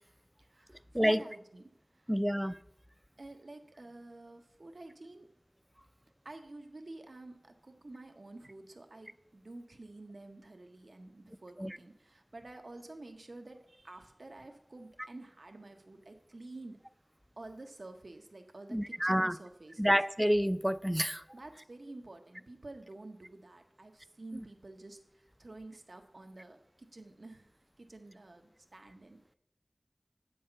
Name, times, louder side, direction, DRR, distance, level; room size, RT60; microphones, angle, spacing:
voice 1, 0.4-2.1 3.2-5.3 6.2-16.8 17.4-19.9 21.3-29.2, right 2 dB, 90° right, 5 dB, 0.7 m, -50 dB
voice 2, 2.1-2.6 11.6-11.8 18.7-19.4 19.8-21.2, equal, 5° right, 15 dB, 0.4 m, -28 dB
7.9 x 5.5 x 6.5 m, 0.77 s
wide cardioid pair, 45°, 0 cm